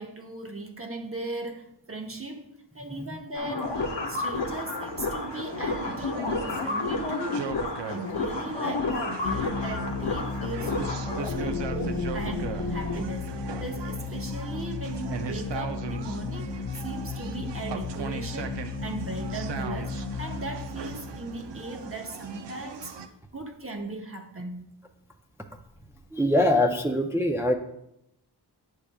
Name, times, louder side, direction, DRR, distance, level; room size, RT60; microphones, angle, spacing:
voice 1, 0.0-7.5 7.9-10.8 11.3-23.0 23.3-24.7, right 2 dB, 30° right, 4 dB, 0.8 m, -38 dB
sound 1, 3.4-13.0, left 3 dB, 90° left, 0.8 m, -31 dB
sound 2, 3.6-23.1, right 6 dB, 85° right, 0.6 m, -39 dB
sound 3, 9.2-22.5, left 4 dB, 45° left, 0.6 m, -35 dB
voice 2, 26.1-27.5, left 1 dB, 5° right, 3 dB, 0.4 m, -23 dB
8.5 x 6.5 x 2.3 m, 0.82 s
wide cardioid pair, 65°, 41 cm